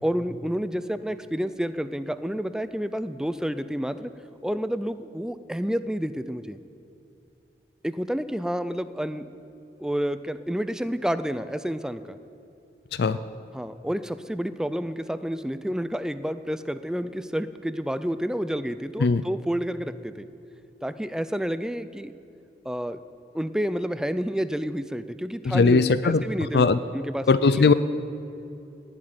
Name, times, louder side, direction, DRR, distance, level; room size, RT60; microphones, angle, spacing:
voice 1, 0.0-4.1 4.4-6.6 7.8-9.2 9.8-12.2 13.5-20.3 20.8-22.1 22.7-23.0 23.3-26.7 26.9-27.7, equal, 5° right, 12 dB, 0.4 m, -29 dB
voice 2, 25.4-26.2 26.5-26.8 27.3-27.7, left 4 dB, 65° left, 14 dB, 0.4 m, -19 dB
18.5 x 7.5 x 9.7 m, 2.9 s
head